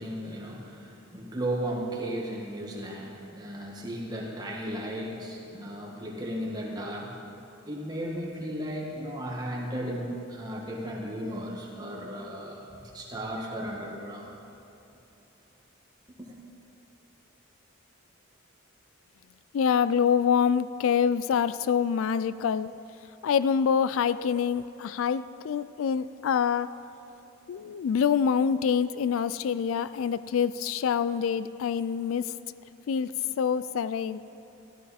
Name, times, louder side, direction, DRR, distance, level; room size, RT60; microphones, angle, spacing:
voice 1, 0.0-7.2 7.7-14.3, right 1 dB, 20° right, -2 dB, 1.6 m, -35 dB
voice 2, 19.5-22.7 23.2-26.7 27.5-32.3 32.9-34.2, left 7 dB, 80° left, 15 dB, 0.3 m, -26 dB
14.0 x 13.0 x 4.2 m, 2.9 s
head